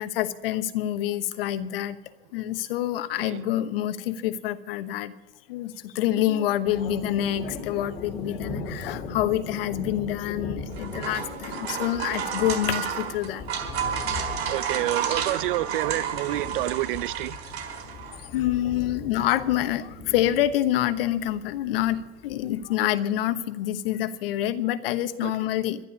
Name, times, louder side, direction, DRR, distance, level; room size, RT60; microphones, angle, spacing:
voice 1, 0.0-2.0 2.3-5.1 5.5-13.4 18.3-25.8, left 12 dB, 65° left, 1.1 m, -27 dB
sound 1, 6.6-22.7, left 3 dB, 20° left, 2.3 m, -40 dB
sound 2, 10.6-18.2, right 8 dB, 85° right, 4.4 m, -31 dB
voice 2, 14.5-17.4 25.2-25.3, right 17 dB, 55° right, 0.5 m, -28 dB
11.5 x 11.5 x 8.4 m
supercardioid pair, 155°, 32 cm